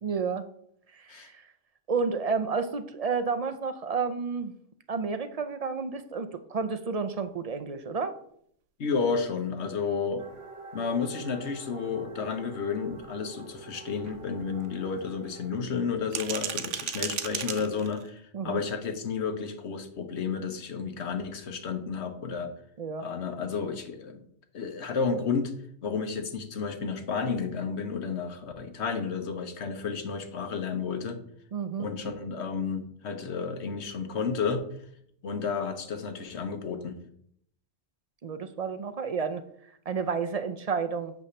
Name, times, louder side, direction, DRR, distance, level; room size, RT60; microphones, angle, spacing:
voice 1, 0.0-0.5 1.0-1.3 1.9-4.5 4.9-8.2 18.3-18.6 22.8-23.0 31.5-31.9 38.2-39.4 39.9-41.1, right 5 dB, 45° right, 9 dB, 0.5 m, -31 dB
voice 2, 8.8-10.2 10.7-22.5 23.0-24.2 24.5-25.5 25.8-31.2 31.8-34.6 35.2-37.0, left 5 dB, 70° left, 7 dB, 1.3 m, -31 dB
sound 1, 10.2-15.6, right 4 dB, 30° right, 1.0 m, -46 dB
sound 2, 10.3-10.4 10.9-11.0 11.4-11.5 11.9-12.0 12.4-12.5 12.9-13.0 13.4-13.6 14.0-15.0 15.9-18.1, right 8 dB, 80° right, 1.1 m, -36 dB
8.4 x 3.4 x 6.6 m, 0.67 s
omnidirectional pair, 1.2 m